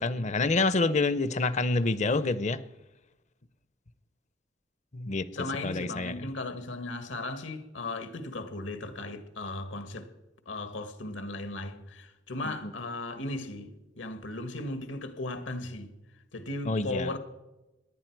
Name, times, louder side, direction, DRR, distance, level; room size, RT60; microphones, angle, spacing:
voice 1, 0.0-2.6 4.9-5.3 5.6-6.1 12.4-12.7 16.6-17.1, left 3 dB, 40° left, 0.7 m, -27 dB
voice 2, 5.3-10.1 10.4-15.9 16.3-17.2, left 2 dB, 75° left, 1.6 m, -36 dB
18.0 x 11.0 x 4.6 m
head